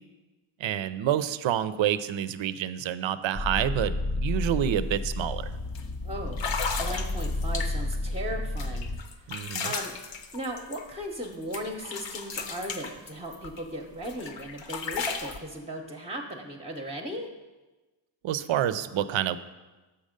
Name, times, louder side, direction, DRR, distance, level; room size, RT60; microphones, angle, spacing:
voice 1, 0.6-5.5 9.3-9.7 18.2-19.4, right 10 dB, 65° right, 14 dB, 0.5 m, -28 dB
sound 1, 3.3-9.0, left 2 dB, 30° left, 0.5 m, -31 dB
sound 2, 4.3-4.5 4.8-5.1 5.7-5.8 6.3-8.0 8.6-11.3 11.5-13.6 14.0-15.4, left 5 dB, 60° left, 0.8 m, -35 dB
voice 2, 6.0-6.4 6.8-8.9 9.2-9.3 9.6-10.0 10.3-17.3, right 1 dB, 15° right, 1 dB, 0.7 m, -37 dB
7.0 x 5.3 x 5.1 m, 1.2 s
cardioid pair, 70°, 50 cm